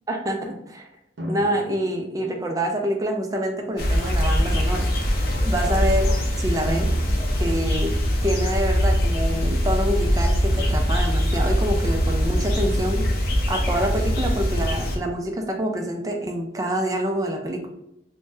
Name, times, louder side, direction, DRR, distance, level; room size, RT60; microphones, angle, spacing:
voice 1, 0.1-0.9 1.3-4.9 5.4-6.1 6.4-6.9 7.3-7.9 8.2-17.7, right 1 dB, 20° right, 3 dB, 0.4 m, -26 dB
sound 1, 1.2-2.9 3.9-4.0 6.6-8.4 12.2-13.5, equal, 80° right, 0.6 m, -38 dB
sound 2, 3.8-15.0, equal, 55° left, 0.5 m, -22 dB
3.3 x 2.2 x 2.6 m, 0.81 s
head